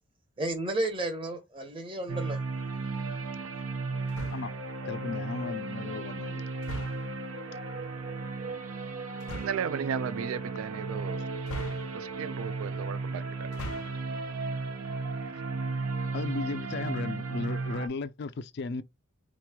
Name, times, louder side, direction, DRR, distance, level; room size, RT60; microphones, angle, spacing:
voice 1, 0.4-2.4, right 2 dB, 25° right, 0.9 m, -32 dB
sound 1, 2.1-17.9, right 3 dB, 85° right, 0.9 m, -35 dB
sound 2, 4.1-4.7 6.6-7.2 9.2-9.7 11.4-12.2 13.4-14.1, left 1 dB, 85° left, 0.7 m, -41 dB
voice 2, 4.9-6.4 15.3-15.4 16.1-18.8, left 4 dB, 50° left, 0.4 m, -36 dB
voice 3, 9.3-11.3 11.9-13.7, right 7 dB, 70° right, 0.3 m, -35 dB
4.0 x 3.0 x 2.2 m
head